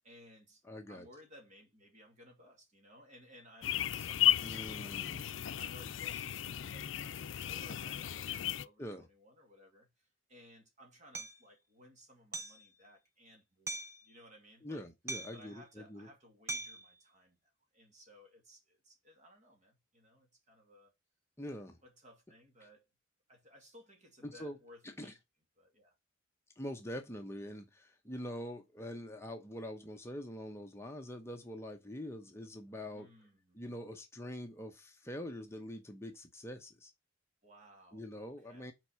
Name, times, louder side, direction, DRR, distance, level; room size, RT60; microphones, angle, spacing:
voice 1, 0.0-5.1 5.6-14.8 15.3-20.9 21.8-22.9 23.3-25.2 25.6-25.9 32.9-33.6 37.4-38.1 38.4-38.7, left 1 dB, 40° right, 2.3 m, -59 dB
voice 2, 0.7-1.1 4.4-5.3 8.8-9.0 14.6-16.1 21.4-21.8 24.2-24.6 24.8-25.1 26.6-33.1 33.5-36.9 37.9-38.7, left 1 dB, 15° left, 0.8 m, -44 dB
sound 1, 3.6-8.6, left 11 dB, 75° left, 0.5 m, -34 dB
Hammer, 11.1-11.4 12.3-12.6 13.7-14.0 15.1-15.5 16.5-16.9, right 2 dB, 15° right, 0.6 m, -40 dB
6.0 x 4.6 x 6.3 m
head